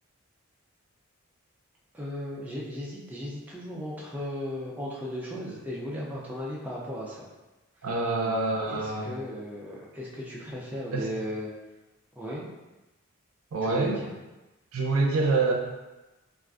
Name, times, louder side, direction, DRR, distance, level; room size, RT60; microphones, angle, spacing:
voice 1, 1.9-7.2 7.8-7.9 8.2-8.4 8.7-11.5 12.2-12.5 13.7-14.1, equal, 5° right, -5 dB, 0.3 m, -36 dB
voice 2, 7.8-9.1 10.9-11.1 13.5-14.0 14.7-15.5, right 3 dB, 80° right, -1 dB, 0.5 m, -26 dB
3.4 x 2.4 x 2.4 m, 1.1 s
head